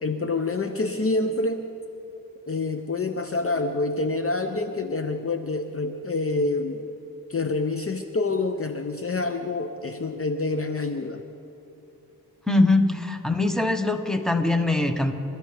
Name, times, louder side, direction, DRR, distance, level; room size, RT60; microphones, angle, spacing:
voice 1, 0.0-1.6 2.5-6.9 7.3-11.2, left 3 dB, 40° left, 7 dB, 0.8 m, -27 dB
voice 2, 12.5-15.1, left 2 dB, ahead, 5 dB, 1.5 m, -22 dB
28.0 x 13.5 x 3.5 m, 2.8 s
cardioid pair, 55°, 36 cm